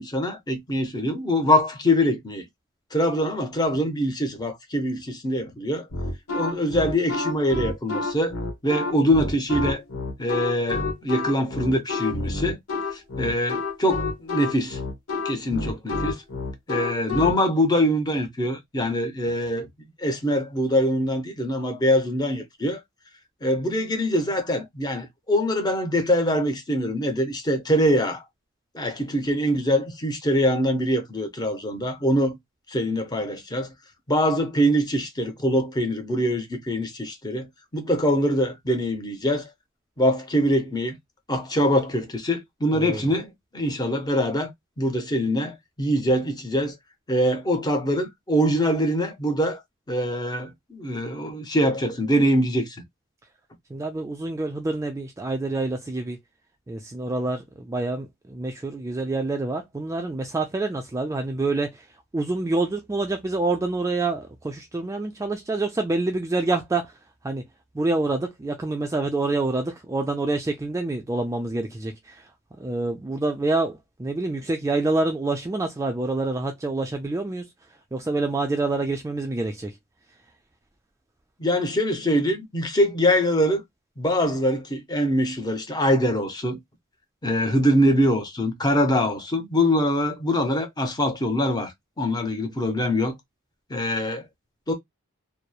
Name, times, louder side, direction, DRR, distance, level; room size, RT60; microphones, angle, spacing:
voice 1, 0.0-2.4 2.9-5.9 6.3-8.3 8.6-9.8 10.2-12.6 12.9-14.8 15.2-16.2 16.7-19.7 20.0-22.8 23.4-28.2 28.7-32.4 32.7-33.7 34.1-37.5 37.7-39.5 40.0-41.0 41.3-44.5 44.8-46.8 47.1-49.6 49.9-52.8 81.4-83.6 84.0-86.6 87.2-93.1 93.7-94.2 94.7-94.8, equal, 20° left, 0.6 m, -23 dB
sound 1, 5.9-17.4, left 3 dB, 85° left, 1.0 m, -29 dB
voice 2, 42.7-43.0 53.7-56.2 56.7-61.9 62.1-67.0 67.2-67.4 67.7-72.3 72.6-77.5 77.9-79.7, right 2 dB, 15° right, 0.3 m, -27 dB
2.9 x 2.0 x 2.2 m
head